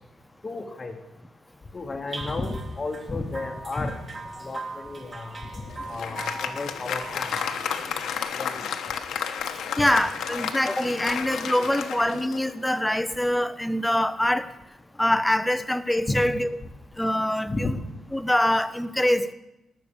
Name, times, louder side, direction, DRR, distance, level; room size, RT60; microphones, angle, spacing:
voice 1, 0.4-1.0 1.7-3.9 4.4-5.4 5.9-7.3 8.3-8.6 16.1-16.2 17.5-17.7, left 3 dB, 25° left, 1.0 m, -32 dB
sound 1, 2.1-8.2, right 3 dB, 30° right, 1.4 m, -40 dB
Applause, 5.4-12.9, left 7 dB, 80° left, 1.1 m, -32 dB
voice 2, 9.8-14.5 15.0-16.5 17.0-17.7 18.1-19.3, left 1 dB, 5° left, 0.5 m, -24 dB
19.5 x 6.7 x 6.9 m
cardioid pair, 155°, 0 cm